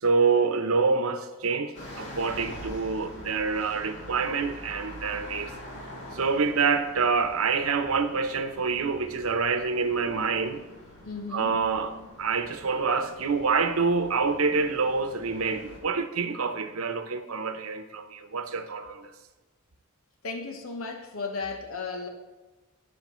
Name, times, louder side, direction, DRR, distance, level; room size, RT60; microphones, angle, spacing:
voice 1, 0.0-5.5 6.1-10.6 11.3-19.1, right 4 dB, 90° right, 0.8 m, -27 dB
sound 1, 1.7-15.8, equal, 55° left, 2.7 m, -45 dB
voice 2, 11.0-11.5 20.2-22.1, left 4 dB, 80° left, 0.9 m, -35 dB
18.5 x 6.5 x 3.1 m
head